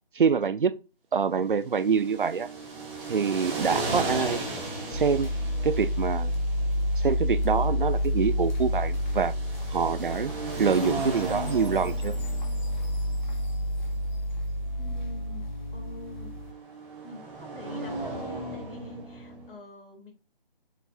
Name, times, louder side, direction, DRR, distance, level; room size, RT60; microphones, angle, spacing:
voice 1, 0.1-0.7 1.1-2.5 3.1-4.4 4.9-5.3 5.6-6.3 7.0-9.3 9.7-10.3 10.6-12.1, right 6 dB, 60° right, 0.7 m, -25 dB
sound 1, 1.6-19.5, right 2 dB, 15° right, 1.6 m, -37 dB
sound 2, 4.9-16.5, equal, 50° left, 1.9 m, -29 dB
Chime, 10.5-14.7, left 1 dB, 10° left, 2.7 m, -53 dB
voice 2, 14.8-16.6 17.0-20.1, left 1 dB, 70° left, 3.8 m, -45 dB
7.1 x 3.9 x 4.4 m
figure-of-eight pair, 160°, 29 cm